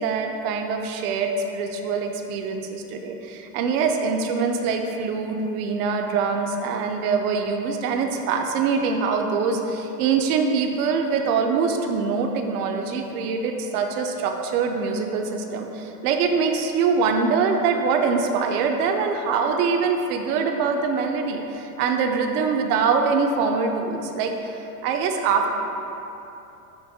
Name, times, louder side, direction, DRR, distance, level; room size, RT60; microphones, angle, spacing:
voice 1, 0.0-25.5, right 5 dB, 75° right, 4 dB, 0.5 m, -24 dB
5.9 x 2.6 x 2.6 m, 3.0 s
supercardioid pair, 105°, 45 cm